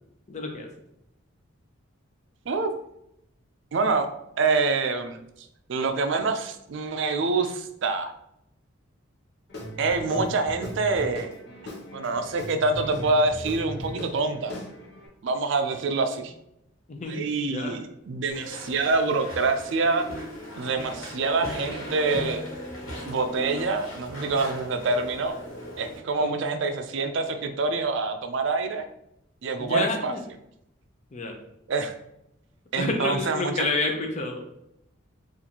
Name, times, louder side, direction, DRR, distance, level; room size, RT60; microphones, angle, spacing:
voice 1, 0.3-0.7 16.9-17.8 26.2-26.4 29.6-30.2 31.1-31.3 32.8-34.4, left 2 dB, 35° left, 3 dB, 0.5 m, -29 dB
voice 2, 3.7-4.1 4.4-5.2 5.7-8.1 9.8-11.3 11.9-14.5 15.2-16.3 17.1-20.1 20.6-22.5 23.0-25.4 25.8-28.8 29.4-30.1 31.7-31.9 32.7-33.6, right 3 dB, 60° right, 7 dB, 0.4 m, -26 dB
Guitar / Drum, 9.5-15.1, equal, 50° left, 0.8 m, -38 dB
Walk footsteps / Chatter / Squeak, 18.3-26.0, left 1 dB, 75° left, 1.3 m, -38 dB
4.1 x 2.5 x 2.9 m, 0.80 s
head